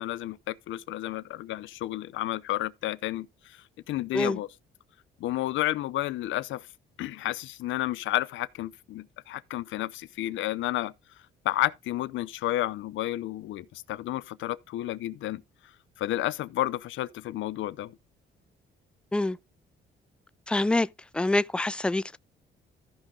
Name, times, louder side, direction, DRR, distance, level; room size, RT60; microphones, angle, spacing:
voice 1, 0.0-4.5 5.2-6.7 7.0-10.9 11.4-15.4 16.0-18.0, left 15 dB, 80° left, 0.6 m, -31 dB
voice 2, 20.5-20.9 21.1-22.2, left 2 dB, 5° left, 0.4 m, -25 dB
14.5 x 5.3 x 3.7 m
cardioid pair, 90°, 20 cm